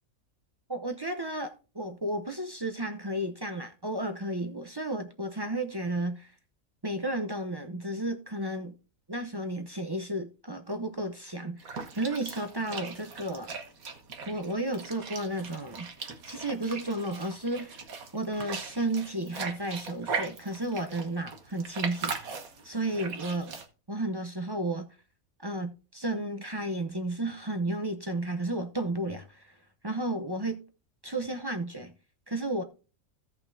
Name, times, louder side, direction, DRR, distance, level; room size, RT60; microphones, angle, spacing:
voice 1, 0.7-6.3 6.8-8.8 9.1-13.5 14.3-15.9 16.3-17.8 18.1-22.3 22.6-23.6 23.9-24.9 25.4-29.6 29.8-30.6 31.0-31.9 32.3-32.6, right 1 dB, 25° right, 0.6 m, -33 dB
sound 1, 11.6-23.7, right 5 dB, 85° right, 1.7 m, -39 dB
16.0 x 5.8 x 2.7 m
omnidirectional pair, 1.5 m